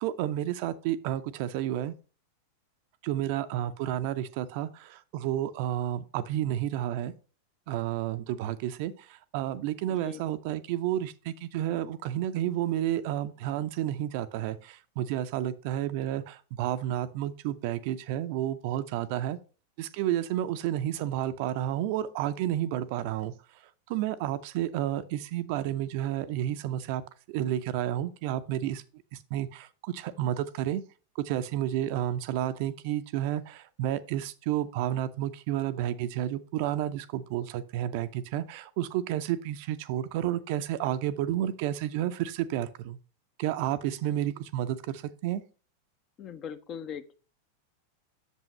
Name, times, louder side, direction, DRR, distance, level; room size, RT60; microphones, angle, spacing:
voice 1, 0.0-1.9 3.0-7.1 7.7-19.4 19.8-23.3 23.9-27.0 27.3-28.8 29.3-30.8 31.2-43.0 43.4-45.4, right 12 dB, 45° right, 0.5 m, -31 dB
voice 2, 9.9-10.2 46.2-47.1, left 7 dB, 30° left, 0.7 m, -40 dB
8.2 x 6.9 x 3.1 m
figure-of-eight pair, 90°, 0 cm